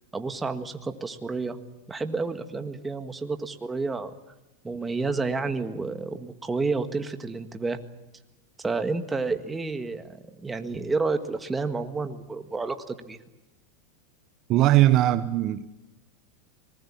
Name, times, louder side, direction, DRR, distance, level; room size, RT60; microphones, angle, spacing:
voice 1, 0.1-1.6 1.9-4.1 4.6-7.8 8.6-13.2, right 3 dB, 10° right, 1.8 m, -30 dB
voice 2, 14.5-15.7, right 14 dB, 40° right, 0.9 m, -20 dB
25.5 x 20.5 x 8.7 m
supercardioid pair, 130°, 0 cm